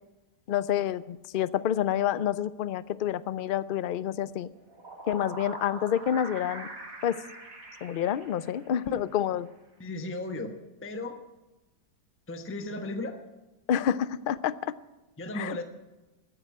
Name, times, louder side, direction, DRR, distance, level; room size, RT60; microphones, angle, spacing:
voice 1, 0.5-4.5 5.1-6.7 7.0-7.2 7.8-9.5 13.7-14.7 15.3-15.6, left 10 dB, 75° left, 16 dB, 0.4 m, -28 dB
sound 1, 4.5-9.0, right 2 dB, 65° right, 3.3 m, -43 dB
voice 2, 9.8-10.5 10.8-11.2 12.3-13.2 15.2-15.6, left 2 dB, 10° left, 6 dB, 1.0 m, -35 dB
14.0 x 10.0 x 8.6 m, 1.0 s
omnidirectional pair, 1.6 m